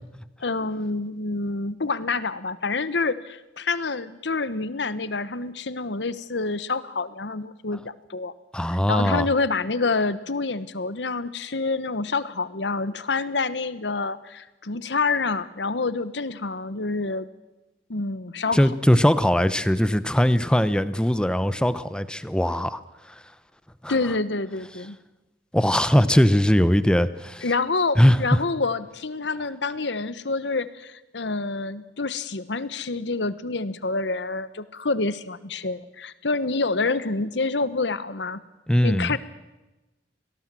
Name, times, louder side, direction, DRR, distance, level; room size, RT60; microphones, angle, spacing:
voice 1, 0.4-8.3 8.7-17.3 17.9-18.7 23.9-25.0 27.4-38.4 38.8-39.2, left 3 dB, 70° left, 15 dB, 1.1 m, -27 dB
voice 2, 8.5-9.3 18.5-22.8 23.8-23.9 25.5-27.4 28.0-28.2 38.7-39.2, equal, 5° left, 14 dB, 0.8 m, -20 dB
24.5 x 18.0 x 7.6 m, 1.0 s
head